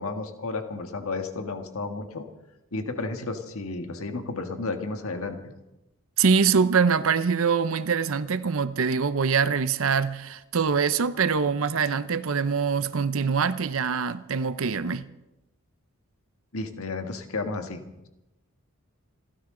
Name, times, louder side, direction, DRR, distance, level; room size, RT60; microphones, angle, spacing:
voice 1, 0.0-2.2 2.7-5.4 16.5-17.8, left 3 dB, 75° left, 1.6 m, -32 dB
voice 2, 6.2-15.1, right 5 dB, 65° right, 0.6 m, -24 dB
28.0 x 12.5 x 3.8 m
head